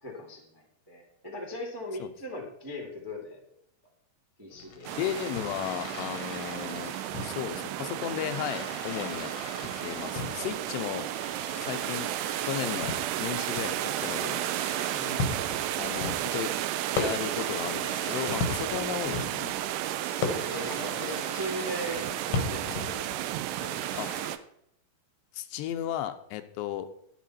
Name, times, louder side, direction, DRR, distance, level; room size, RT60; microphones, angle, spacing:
voice 1, 0.0-3.4 4.4-4.9 14.9-15.3 20.4-23.1 23.6-23.9, equal, 35° right, 1 dB, 0.3 m, -39 dB
Fireworks, 4.5-24.3, left 4 dB, 60° left, 1.6 m, -38 dB
sound 1, 4.9-24.4, right 13 dB, 85° right, 2.6 m, -33 dB
voice 2, 5.0-6.9 7.2-9.3 9.8-11.1 11.6-12.1 12.4-12.9 13.2-14.4 15.8-16.5 17.0-19.5 24.0-24.1 25.3-26.9, left 11 dB, 85° left, 9 dB, 2.9 m, -34 dB
11.0 x 9.1 x 4.2 m, 0.71 s
omnidirectional pair, 4.8 m